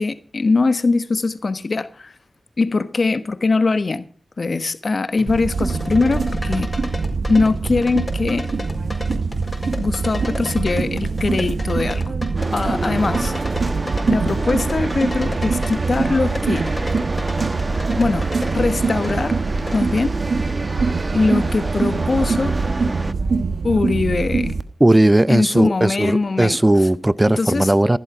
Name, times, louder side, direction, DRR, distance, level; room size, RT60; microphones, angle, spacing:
voice 1, 0.0-2.1 2.6-4.0 4.4-6.7 7.3-8.5 9.8-12.0 12.5-13.3 14.1-16.7 18.0-19.4 19.7-20.1 21.1-22.6 23.6-24.6 25.3-26.6 27.4-27.7, left 3 dB, 60° left, 1.3 m, -21 dB
sound 1, 5.2-20.1, left 2 dB, 25° left, 4.5 m, -34 dB
sound 2, 5.3-24.6, right 4 dB, 75° right, 1.2 m, -24 dB
sound 3, 12.4-23.1, right 2 dB, 40° right, 1.2 m, -28 dB
voice 2, 24.8-28.0, right 1 dB, 20° right, 0.7 m, -16 dB
15.0 x 12.0 x 4.9 m
cardioid pair, 40°, 0 cm